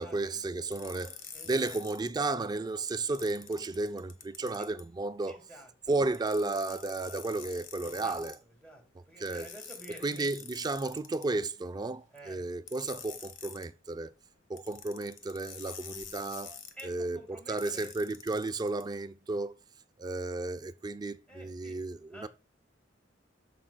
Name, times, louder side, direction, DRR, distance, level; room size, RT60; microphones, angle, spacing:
voice 1, 0.0-1.2 1.5-5.4 5.9-8.4 9.2-9.5 10.0-14.1 14.5-19.6 20.0-22.3, right 2 dB, 20° right, 0.3 m, -33 dB
sound 1, 0.7-2.1 3.1-4.8 6.1-8.4 9.3-11.5 12.7-13.7 14.6-16.8 17.6-18.8, left 8 dB, 75° left, 1.0 m, -47 dB
voice 2, 1.3-1.8 4.6-4.7 5.3-5.7 7.8-8.2 8.6-10.3 12.1-12.4 16.8-17.9 21.3-21.8 22.1-22.3, right 1 dB, 5° left, 1.9 m, -50 dB
13.5 x 4.9 x 2.2 m
head